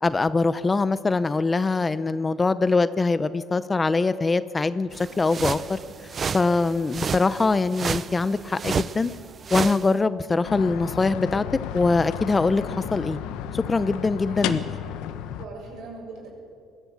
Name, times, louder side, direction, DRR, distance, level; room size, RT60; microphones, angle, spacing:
voice 1, 0.0-5.8 6.3-9.1 9.5-11.4 11.7-13.2 13.5-14.6, left 3 dB, 20° left, 14 dB, 0.6 m, -23 dB
voice 2, 0.6-0.9 14.3-14.5 15.1-16.3, right 3 dB, 65° right, 1 dB, 6.9 m, -42 dB
sound 1, 4.9-9.9, right 6 dB, 35° right, 0.5 m, -31 dB
sound 2, 10.4-15.5, left 10 dB, 80° left, 1.1 m, -33 dB
21.5 x 14.5 x 8.5 m, 2.3 s
cardioid pair, 120°, 0 cm